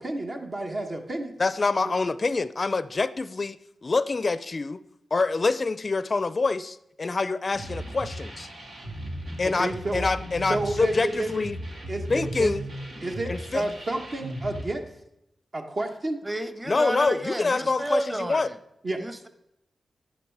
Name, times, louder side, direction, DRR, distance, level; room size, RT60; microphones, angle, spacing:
voice 1, 0.0-1.3 9.6-10.0 10.5-11.3 11.9-12.5 13.0-14.8 15.5-16.3 18.8-19.0, right 2 dB, 50° right, 2 dB, 1.3 m, -30 dB
voice 2, 1.4-4.8 5.1-8.5 9.4-11.6 12.1-12.6 13.3-13.6 16.7-18.5, left 3 dB, 45° left, 15 dB, 0.4 m, -26 dB
sound 1, 7.5-14.6, right 1 dB, 80° right, 2.7 m, -36 dB
voice 3, 16.2-18.6 19.0-19.3, right 1 dB, 15° right, 10 dB, 1.1 m, -31 dB
11.5 x 10.5 x 4.7 m, 0.82 s
cardioid pair, 60°, 0 cm